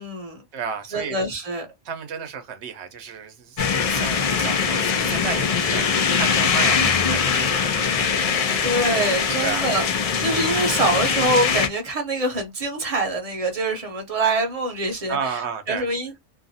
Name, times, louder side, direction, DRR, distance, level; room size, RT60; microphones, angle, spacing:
voice 1, 0.0-0.4 0.9-1.7 8.3-9.8 10.2-15.4 15.7-16.2, right 2 dB, 35° right, 0.8 m, -25 dB
voice 2, 0.5-1.2 1.8-8.7 9.4-9.7 15.1-15.9, right 7 dB, 70° right, 1.0 m, -32 dB
sound 1, 3.6-11.7, left 6 dB, 55° left, 0.4 m, -22 dB
2.6 x 2.4 x 2.6 m
omnidirectional pair, 1.2 m